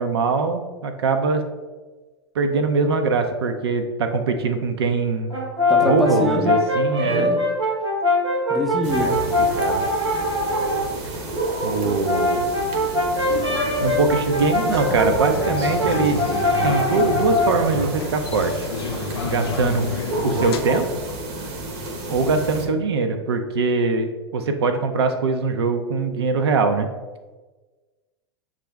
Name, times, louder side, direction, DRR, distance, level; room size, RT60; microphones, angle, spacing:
voice 1, 0.0-1.4 2.4-5.4 5.8-7.3 9.0-9.8 11.6-12.5 13.8-16.2 16.6-18.7 19.3-19.9 20.2-20.9 22.1-26.9, right 4 dB, 65° right, 6 dB, 0.5 m, -22 dB
Brass instrument, 5.3-10.9 11.8-17.7, left 1 dB, 85° right, 1.1 m, -22 dB
voice 2, 5.7-6.5 7.0-7.4 8.5-9.3, left 1 dB, ahead, 1 dB, 0.6 m, -24 dB
sound 1, 8.8-22.7, right 1 dB, 45° right, 0.8 m, -31 dB
sound 2, 13.3-20.6, left 5 dB, 65° left, 0.5 m, -31 dB
6.6 x 2.4 x 3.2 m, 1.3 s
figure-of-eight pair, 90°, 14 cm